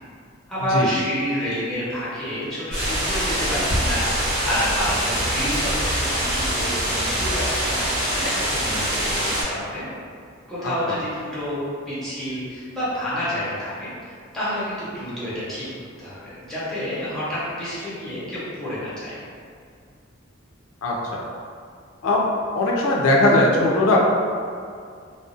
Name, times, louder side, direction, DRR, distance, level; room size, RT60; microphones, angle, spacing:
voice 1, 0.5-4.1 4.4-9.8 10.5-15.7 16.0-19.2, equal, ahead, -12 dB, 0.8 m, -29 dB
sound 1, 2.7-9.4, equal, 50° right, 1.0 m, -24 dB
voice 2, 20.8-21.2 22.0-22.3 22.5-24.0, left 2 dB, 85° left, -2 dB, 0.4 m, -19 dB
2.4 x 2.0 x 2.6 m, 2.2 s
head